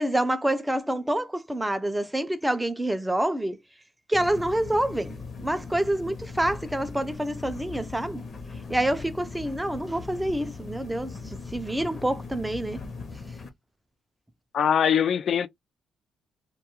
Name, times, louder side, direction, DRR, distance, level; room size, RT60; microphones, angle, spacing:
voice 1, 0.0-3.6 4.1-5.2 5.4-8.2 8.7-11.1 11.5-12.8, right 1 dB, 10° right, 0.4 m, -27 dB
sound 1, 4.1-13.5, left 4 dB, 45° left, 0.7 m, -39 dB
voice 2, 14.5-15.5, left 8 dB, 60° left, 0.3 m, -22 dB
2.3 x 2.3 x 2.8 m
cardioid pair, 90°, 0 cm